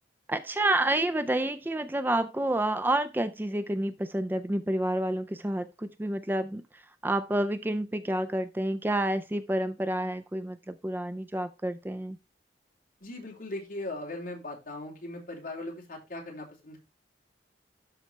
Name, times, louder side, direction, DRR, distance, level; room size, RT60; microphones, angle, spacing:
voice 1, 0.3-12.2, right 1 dB, 10° right, 0.4 m, -29 dB
voice 2, 13.0-16.8, left 2 dB, 50° left, 3.1 m, -39 dB
12.5 x 4.3 x 3.2 m
head